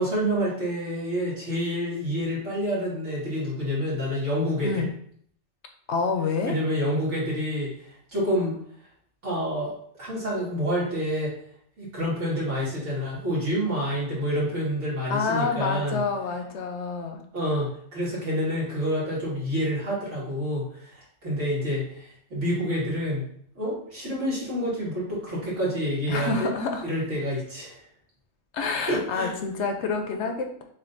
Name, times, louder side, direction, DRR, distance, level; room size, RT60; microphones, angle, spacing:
voice 1, 0.0-4.8 6.4-8.6 9.2-9.7 10.0-11.3 11.8-16.0 17.3-23.2 23.6-26.5 26.8-27.8 28.9-29.3, equal, 65° right, -7 dB, 2.2 m, -28 dB
voice 2, 5.9-6.6 15.1-17.2 26.1-26.8 28.5-30.6, left 4 dB, 70° left, 4 dB, 0.8 m, -28 dB
6.8 x 2.6 x 2.6 m, 0.63 s
omnidirectional pair, 1.3 m